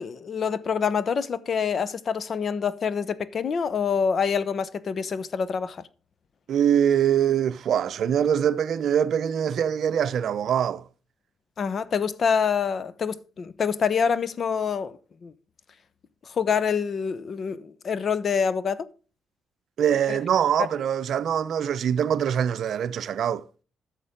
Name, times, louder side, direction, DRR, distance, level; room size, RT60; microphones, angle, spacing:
voice 1, 0.0-5.8 11.6-15.3 16.2-18.9 20.1-20.2, left 6 dB, 50° left, 0.7 m, -26 dB
voice 2, 6.5-10.9 19.8-23.4, right 9 dB, 65° right, 0.6 m, -23 dB
9.8 x 6.6 x 5.1 m
cardioid pair, 90°, 0 cm